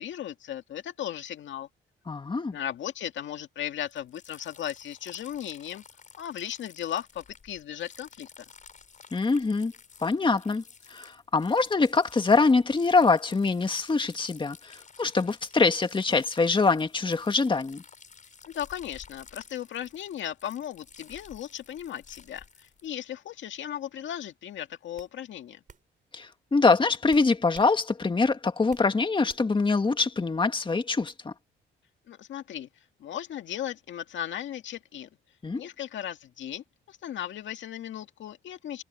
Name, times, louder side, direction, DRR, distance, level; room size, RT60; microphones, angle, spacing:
voice 1, 0.0-1.7 2.5-5.8 6.2-8.3 18.5-25.6 32.1-35.1 35.5-38.8, left 10 dB, 70° left, 2.0 m, -36 dB
voice 2, 2.1-2.6 9.1-9.7 10.0-10.6 10.9-17.8 26.1-31.3 35.4-35.6, left 4 dB, 25° left, 1.9 m, -24 dB
sound 1, 3.9-22.9, left 5 dB, 40° left, 5.7 m, -53 dB
sound 2, 24.2-24.4 25.0-25.1 25.7-25.8 27.1-27.7 28.1-28.9 29.3-29.6, right 6 dB, 40° right, 6.6 m, -50 dB
cardioid pair, 90°, 20 cm